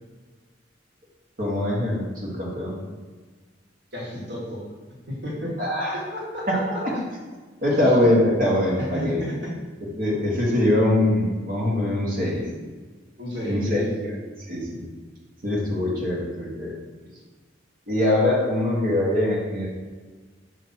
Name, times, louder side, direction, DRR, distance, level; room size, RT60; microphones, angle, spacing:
voice 1, 1.4-2.8 5.6-6.0 6.5-6.9 7.6-9.2 10.0-12.5 13.5-14.1 14.5-14.8 15.4-16.7 17.9-19.7, left 1 dB, 50° right, -5 dB, 1.6 m, -23 dB
voice 2, 3.9-4.6 5.1-5.6 5.9-6.5 6.9-7.0 7.7-7.9 8.8-9.5 13.2-14.2, equal, 75° right, -6 dB, 1.5 m, -32 dB
5.6 x 3.0 x 5.6 m, 1.4 s
head